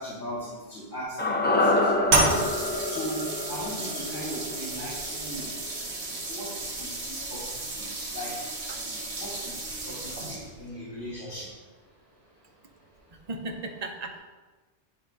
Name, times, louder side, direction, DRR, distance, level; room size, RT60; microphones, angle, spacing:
voice 1, 0.0-2.4 2.9-3.2 3.5-5.5 6.3-8.4 8.8-11.5, equal, 85° left, -12 dB, 2.8 m, -39 dB
sound 1, 1.2-5.5 5.8-5.9, left 2 dB, 15° left, 0.3 m, -27 dB
sound 2, 2.1-10.7, right 3 dB, 60° right, 1.2 m, -31 dB
voice 2, 13.3-14.2, right 2 dB, 40° right, 3 dB, 0.7 m, -36 dB
10.5 x 3.7 x 3.6 m, 1.3 s
omnidirectional pair, 1.2 m